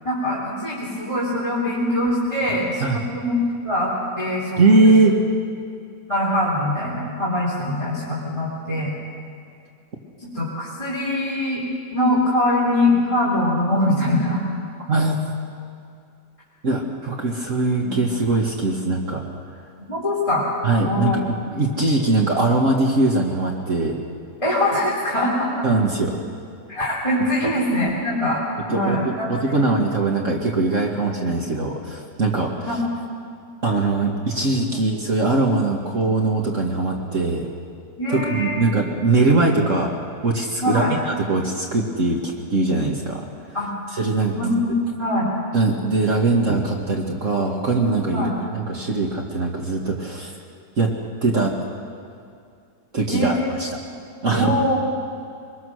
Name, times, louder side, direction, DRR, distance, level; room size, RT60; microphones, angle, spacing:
voice 1, 0.0-2.8 3.1-3.9 4.2-4.9 6.1-8.9 10.2-11.6 11.9-14.4 17.8-17.9 19.9-20.5 20.8-21.2 24.4-25.5 26.7-28.4 28.7-29.7 32.6-32.8 34.7-34.9 38.0-38.6 40.6-40.9 43.5-43.7 44.3-45.3 48.1-48.3 53.1-53.5 54.3-54.8, left 1 dB, 20° left, -7 dB, 3.6 m, -23 dB
voice 2, 4.6-5.2 14.9-15.2 16.6-19.2 20.6-24.0 25.6-26.2 28.7-32.5 33.6-37.5 38.1-39.9 40.2-43.2 43.9-44.3 45.5-48.3 48.5-50.3 50.8-50.9 51.2-51.5 52.9-53.3 53.6-53.7 54.2-54.5, right 3 dB, 50° right, 0 dB, 2.0 m, -21 dB
24.5 x 21.0 x 6.4 m, 2.4 s
omnidirectional pair, 1.8 m